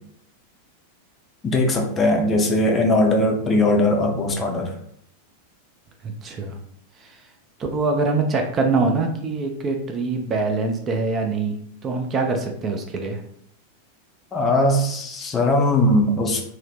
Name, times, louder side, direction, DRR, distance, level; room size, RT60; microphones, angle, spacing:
voice 1, 1.4-4.7 14.3-16.4, left 1 dB, 20° left, 2 dB, 0.5 m, -20 dB
voice 2, 6.0-6.6 7.0-7.2 7.7-11.5 11.8-13.2, right 3 dB, 25° right, 3 dB, 0.4 m, -24 dB
2.7 x 2.1 x 3.4 m, 0.66 s
figure-of-eight pair, 90°, 0 cm